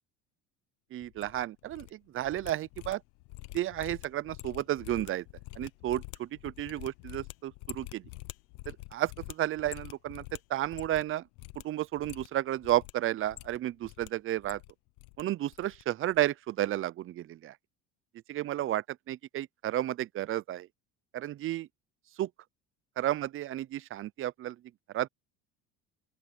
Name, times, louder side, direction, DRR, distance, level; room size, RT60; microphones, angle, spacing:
voice 1, 0.9-3.0 3.5-5.2 5.6-8.0 8.9-10.2 10.5-11.2 11.6-14.6 15.2-17.5 18.3-20.7 21.1-21.7 22.2-22.3 23.0-24.6 24.9-25.1, right 13 dB, 45° right, 0.6 m, -32 dB
sound 1, 1.0-1.9 2.2-11.1 11.4-11.6 11.9-12.9 13.2-14.1 14.3-15.2 15.5-15.8 16.1-16.3, left 23 dB, 75° left, 1.0 m, -47 dB
open air
supercardioid pair, 100°, 31 cm